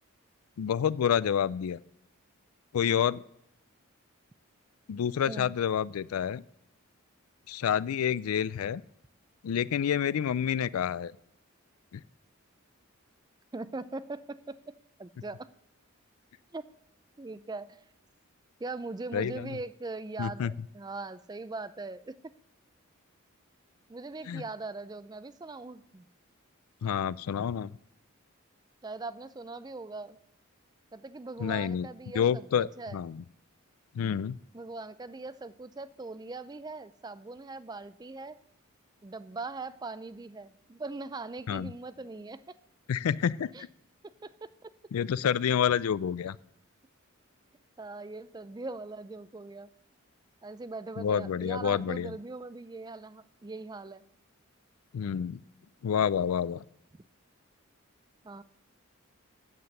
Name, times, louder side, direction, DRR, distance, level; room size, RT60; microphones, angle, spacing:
voice 1, 0.6-1.8 2.7-3.2 4.9-6.4 7.5-8.8 9.4-11.1 11.9-12.0 19.1-19.6 20.2-20.5 24.3-24.4 26.8-27.7 31.4-31.9 32.1-33.2 33.9-34.4 41.5-41.7 42.9-43.7 44.9-46.4 51.0-52.2 54.9-55.4 55.8-56.6, left 8 dB, 85° left, 20 dB, 0.3 m, -28 dB
voice 2, 13.5-14.6 15.0-15.5 16.5-16.6 17.2-17.8 18.6-22.3 23.9-26.1 28.8-30.2 30.9-33.0 34.5-38.4 39.0-42.6 43.5-43.7 44.0-44.7 47.8-49.7 50.4-54.0 56.9-57.0 58.2-58.4, right 3 dB, 20° right, 15 dB, 0.3 m, -41 dB
9.5 x 7.6 x 6.5 m, 0.78 s
head